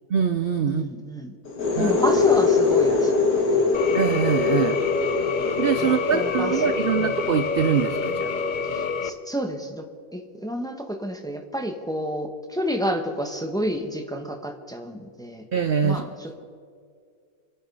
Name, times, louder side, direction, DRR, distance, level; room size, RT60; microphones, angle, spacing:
voice 1, 0.1-0.8 1.8-1.9 3.9-4.8 5.6-8.3 15.5-16.0, right 7 dB, 60° right, 10 dB, 0.6 m, -23 dB
voice 2, 0.7-1.4 1.7-3.7 5.8-6.6 7.0-7.1 8.7-9.9 10.1-15.5 15.8-16.5, equal, 5° left, 4 dB, 0.9 m, -30 dB
sound 1, 1.4-9.0, left 4 dB, 75° left, 2.0 m, -24 dB
sound 2, 3.7-9.1, left 5 dB, 45° left, 0.6 m, -28 dB
26.0 x 8.9 x 5.4 m, 2.2 s
omnidirectional pair, 1.6 m